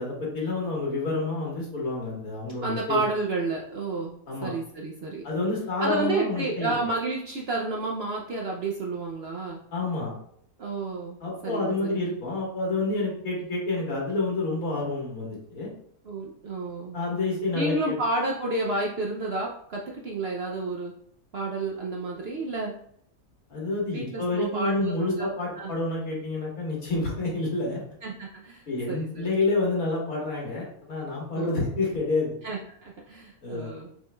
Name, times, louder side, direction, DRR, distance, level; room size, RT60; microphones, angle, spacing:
voice 1, 0.0-3.0 4.3-4.5 5.2-6.9 9.7-10.1 11.2-15.7 16.9-17.9 23.5-27.8 28.7-32.4 33.4-33.7, left 2 dB, 70° left, -3 dB, 2.0 m, -28 dB
voice 2, 2.6-5.2 5.8-9.6 10.6-12.1 16.0-17.0 17.5-20.9 21.3-22.7 23.9-25.3 25.6-25.7 28.0-29.3 31.3-31.7 32.4-33.9, right 2 dB, 60° right, -1 dB, 0.7 m, -31 dB
6.4 x 3.6 x 2.3 m, 0.65 s
omnidirectional pair, 1.6 m